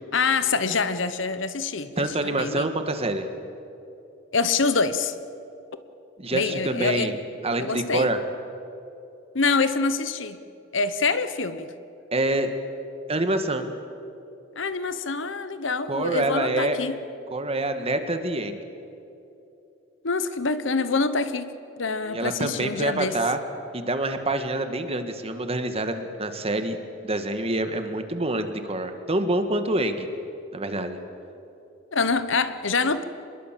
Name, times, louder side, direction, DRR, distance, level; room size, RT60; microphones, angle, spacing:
voice 1, 0.1-2.7 4.3-5.1 6.3-7.1 7.6-8.1 9.3-10.4 10.7-11.7 14.5-17.0 20.0-21.5 21.8-23.2 31.9-33.0, left 4 dB, 70° left, 12 dB, 1.1 m, -25 dB
voice 2, 2.0-3.3 6.2-7.2 7.4-8.2 12.1-12.5 13.1-13.7 15.9-16.8 17.3-18.6 22.0-23.4 23.7-26.8 27.0-30.1 30.5-31.0, right 2 dB, 30° right, 8 dB, 1.7 m, -26 dB
26.0 x 21.5 x 7.6 m, 2.8 s
head